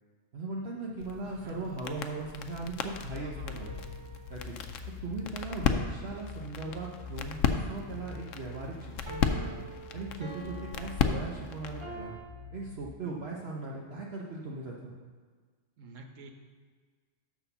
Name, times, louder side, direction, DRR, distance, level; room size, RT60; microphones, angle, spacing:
voice 1, 0.3-3.7 4.3-4.6 5.0-9.6 9.9-12.2 12.5-14.9, right 3 dB, 55° right, -3 dB, 1.0 m, -39 dB
sound 1, 1.0-11.9, left 6 dB, 85° left, 1.0 m, -35 dB
voice 2, 1.2-1.7 3.1-3.7 15.8-16.3, right 3 dB, 80° right, 4 dB, 1.3 m, -49 dB
sound 2, 3.3-12.9, left 4 dB, 15° left, 0.6 m, -47 dB
sound 3, 3.6-4.6 9.1-12.2, right 2 dB, 30° right, 0.7 m, -46 dB
6.5 x 5.9 x 6.7 m, 1.5 s
omnidirectional pair, 1.3 m